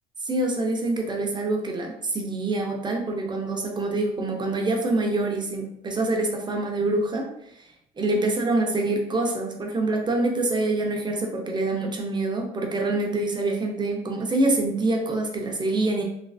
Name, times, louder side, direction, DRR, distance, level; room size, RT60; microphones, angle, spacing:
voice 1, 0.2-7.3 8.0-16.0, right 2 dB, 25° right, 1 dB, 0.7 m, -25 dB
3.1 x 3.1 x 2.6 m, 0.78 s
cardioid pair, 110°, 17 cm